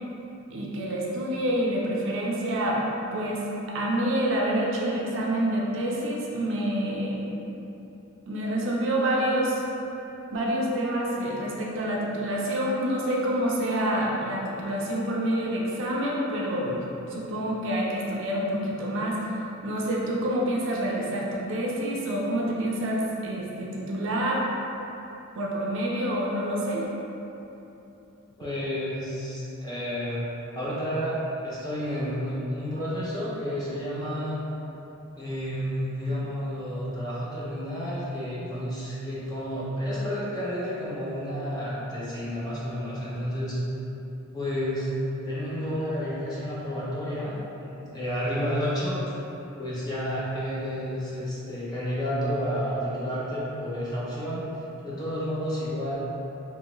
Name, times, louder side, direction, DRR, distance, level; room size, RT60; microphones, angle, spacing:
voice 1, 0.5-2.8 3.1-7.3 8.3-9.6 10.3-16.8 17.1-19.2 19.6-24.5 25.4-26.9, right 1 dB, 65° right, -3 dB, 0.4 m, -27 dB
voice 2, 28.4-30.2 30.5-34.4 35.1-43.6 44.3-44.9 45.3-47.3 47.6-49.0 49.6-54.4 54.8-56.0, equal, 20° left, -9 dB, 0.6 m, -30 dB
3.0 x 2.3 x 3.0 m, 3.0 s
head